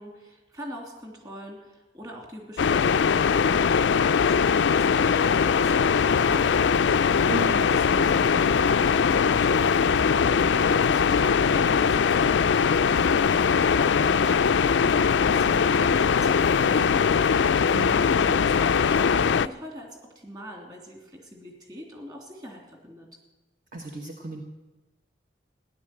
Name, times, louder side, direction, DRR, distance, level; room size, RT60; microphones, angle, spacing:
voice 1, 0.0-6.7 7.6-17.3 17.8-23.1, equal, 20° right, 1 dB, 3.1 m, -42 dB
sound 1, 2.6-19.5, left 6 dB, 75° left, 0.4 m, -21 dB
sound 2, 6.1-19.1, equal, 90° right, 2.0 m, -43 dB
voice 2, 7.3-7.7 17.7-17.9 23.7-24.4, right 3 dB, 45° right, 1 dB, 1.3 m, -34 dB
14.5 x 11.0 x 7.8 m, 1.1 s
head